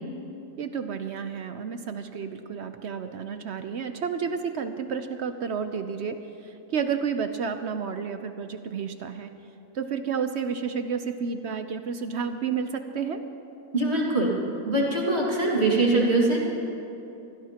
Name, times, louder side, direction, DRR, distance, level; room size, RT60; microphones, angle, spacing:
voice 1, 0.6-9.3 9.7-13.2, right 6 dB, 60° right, 8 dB, 0.7 m, -31 dB
voice 2, 13.7-14.3 14.7-16.4, right 2 dB, 45° right, -3 dB, 2.2 m, -22 dB
24.5 x 16.5 x 2.9 m, 2.8 s
omnidirectional pair, 1.6 m